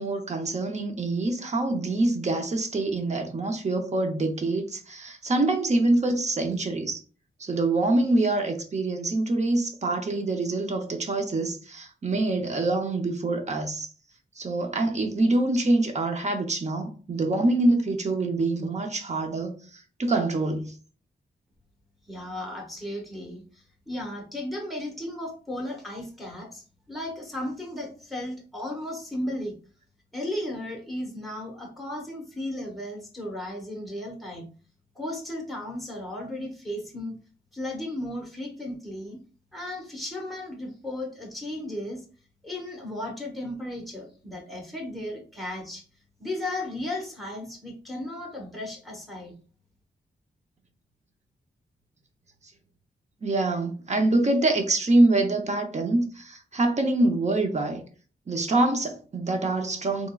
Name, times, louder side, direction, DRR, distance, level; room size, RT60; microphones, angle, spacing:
voice 1, 0.0-7.0 7.4-13.9 14.4-19.6 20.0-20.7 53.2-57.8 58.3-60.1, right 2 dB, 35° right, 0.7 m, -25 dB
voice 2, 22.1-29.5 30.1-34.5 34.9-37.2 37.5-39.2 39.5-42.0 42.4-45.8 46.2-49.3, left 1 dB, ahead, 1.0 m, -35 dB
3.6 x 3.0 x 2.3 m
wide cardioid pair, 120°, 19 cm